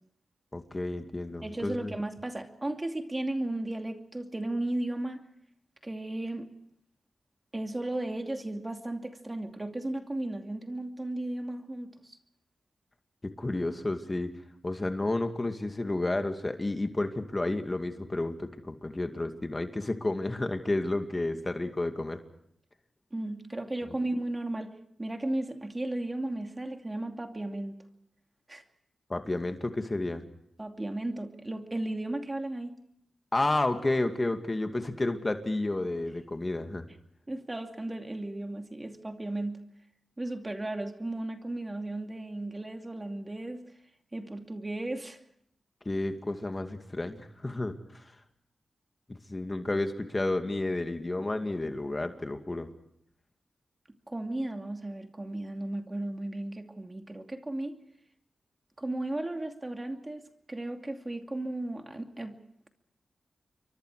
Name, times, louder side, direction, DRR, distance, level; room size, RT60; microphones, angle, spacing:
voice 1, 0.5-1.9 13.4-14.3 14.6-22.2 29.1-30.2 33.3-36.9 45.9-48.0 49.3-52.7, left 2 dB, 30° left, 6 dB, 2.3 m, -31 dB
voice 2, 1.4-5.2 5.8-6.5 7.5-12.2 23.1-27.8 28.5-28.6 30.6-32.8 37.3-39.6 40.2-43.7 44.1-45.2 54.1-57.8 58.8-60.2 60.5-62.4, right 1 dB, 25° right, 5 dB, 2.6 m, -35 dB
28.5 x 23.5 x 4.9 m, 0.71 s
cardioid pair, 45°, 0 cm